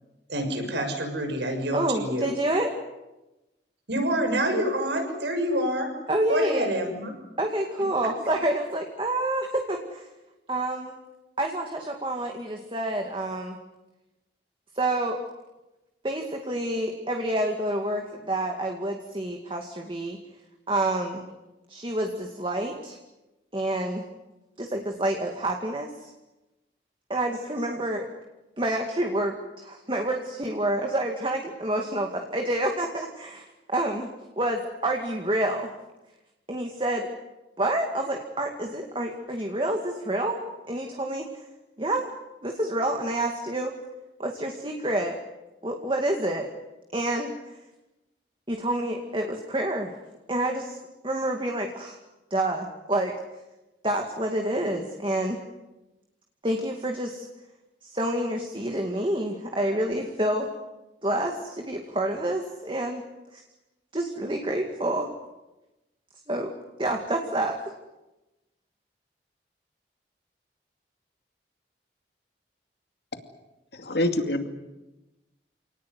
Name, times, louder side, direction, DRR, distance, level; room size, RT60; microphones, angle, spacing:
voice 1, 0.3-2.3 3.9-5.9 6.3-7.1, right 1 dB, 80° right, 4 dB, 6.6 m, -27 dB
voice 2, 1.7-2.7 6.1-6.7 7.4-10.1 10.5-10.9 11.4-13.6 14.8-15.2 16.0-20.2 20.7-21.3 21.7-23.0 23.5-24.0 24.6-26.1 27.1-28.0 28.6-34.1 34.4-35.7 36.5-37.1 37.6-40.4 40.7-41.3 41.8-42.1 42.4-43.7 44.2-45.2 45.6-46.5 46.9-47.3 48.5-49.9 50.3-50.8 51.0-52.0 52.3-53.1 53.8-55.4 56.4-57.3 57.9-60.5 61.0-63.0 63.3-63.4 63.9-65.1 66.3-66.5 66.8-67.6, right 1 dB, 30° right, 3 dB, 2.3 m, -28 dB
voice 3, 73.7-74.6, left 1 dB, 70° left, 6 dB, 2.5 m, -26 dB
28.5 x 19.0 x 9.6 m, 1.0 s
head